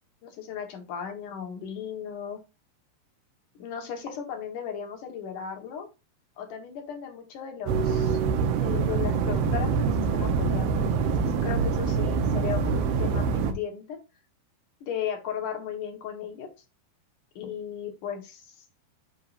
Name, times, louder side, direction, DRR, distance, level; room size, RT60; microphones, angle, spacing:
voice 1, 0.2-2.4 3.6-5.9 6.4-8.2 8.6-14.0 14.8-16.5 17.4-18.7, left 8 dB, 60° left, 4 dB, 2.7 m, -36 dB
sound 1, 7.7-13.5, right 5 dB, 80° right, 2.9 m, -25 dB
10.0 x 5.7 x 2.6 m, 0.27 s
omnidirectional pair, 4.6 m